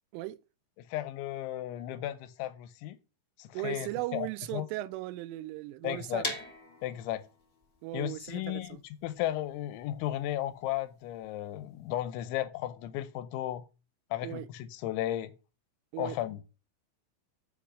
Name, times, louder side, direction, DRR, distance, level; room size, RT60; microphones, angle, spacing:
voice 1, 0.9-3.0 3.4-4.7 5.8-6.2 6.8-7.3 7.9-13.7 14.1-15.3 16.0-16.4, left 13 dB, 80° left, 2.9 m, -35 dB
voice 2, 3.5-6.3 7.8-8.8 14.2-14.5 15.9-16.2, right 17 dB, 85° right, 3.1 m, -37 dB
sound 1, 6.2-12.0, left 2 dB, 40° left, 1.0 m, -42 dB
7.4 x 7.0 x 6.0 m
omnidirectional pair, 5.6 m